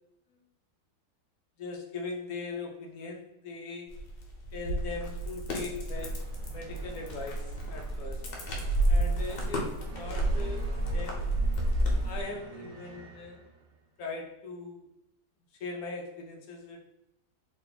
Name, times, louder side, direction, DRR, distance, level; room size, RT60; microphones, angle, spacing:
voice 1, 1.6-4.0 4.5-8.3 8.9-11.3 12.0-13.4 14.0-14.9 15.6-16.9, left 3 dB, 65° left, 2 dB, 1.0 m, -40 dB
sound 1, 3.9-12.2, right 1 dB, 85° left, 1.6 m, -30 dB
sound 2, 5.2-13.8, right 3 dB, 90° right, 1.5 m, -49 dB
3.7 x 2.5 x 3.9 m, 0.87 s
omnidirectional pair, 1.9 m